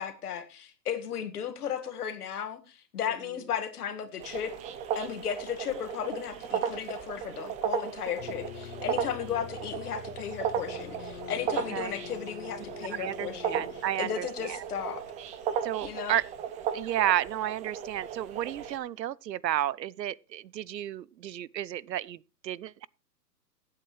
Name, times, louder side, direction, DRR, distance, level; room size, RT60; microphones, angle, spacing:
voice 1, 0.0-4.5 5.0-15.0 15.8-16.2, left 8 dB, 65° left, 1.9 m, -35 dB
sound 1, 4.2-18.8, right 8 dB, 15° right, 0.7 m, -36 dB
sound 2, 6.3-8.4, left 10 dB, 25° left, 2.0 m, -51 dB
sound 3, 8.2-13.8, left 10 dB, 45° left, 1.2 m, -45 dB
voice 2, 13.0-14.6 15.6-16.3 16.7-22.9, right 12 dB, 80° right, 0.6 m, -32 dB
19.5 x 8.2 x 3.2 m
hypercardioid pair, 130°, 49 cm